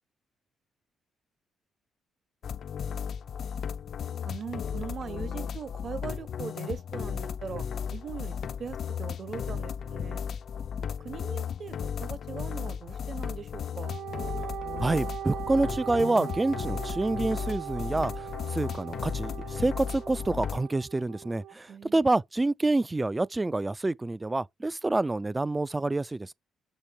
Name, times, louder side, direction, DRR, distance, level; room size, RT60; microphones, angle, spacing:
sound 1, 2.4-20.6, left 7 dB, 60° left, 0.5 m, -35 dB
voice 1, 4.2-10.2 10.8-14.0 21.7-22.1, right 6 dB, 50° right, 1.2 m, -40 dB
Wind instrument woodwind instrument, 13.8-21.6, right 11 dB, 75° right, 0.9 m, -40 dB
voice 2, 14.8-18.1 18.5-21.7 21.9-26.3, right 2 dB, 15° right, 0.3 m, -27 dB
7.2 x 4.2 x 4.8 m
cardioid pair, 90°, 0 cm